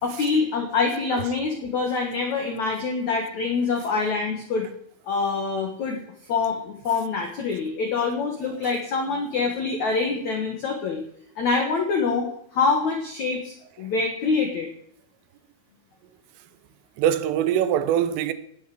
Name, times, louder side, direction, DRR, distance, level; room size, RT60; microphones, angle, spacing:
voice 1, 0.0-4.7 5.1-6.0 6.3-11.0 11.4-12.3 12.5-14.7, left 4 dB, 55° left, 2.1 m, -25 dB
voice 2, 17.0-18.3, right 10 dB, 90° right, 3.5 m, -23 dB
18.5 x 6.6 x 8.0 m
omnidirectional pair, 5.6 m